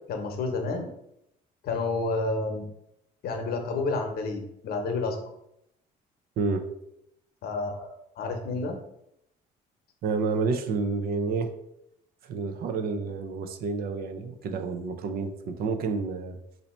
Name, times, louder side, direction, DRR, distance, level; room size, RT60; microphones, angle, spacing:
voice 1, 0.1-0.9 1.6-2.7 3.2-5.2 7.4-7.9 8.2-8.8, left 3 dB, 65° left, 4 dB, 0.9 m, -30 dB
voice 2, 6.4-6.7 10.0-11.5 12.2-16.4, right 4 dB, 65° right, 6 dB, 0.6 m, -29 dB
4.2 x 2.7 x 4.3 m, 0.81 s
cardioid pair, 110°, 17 cm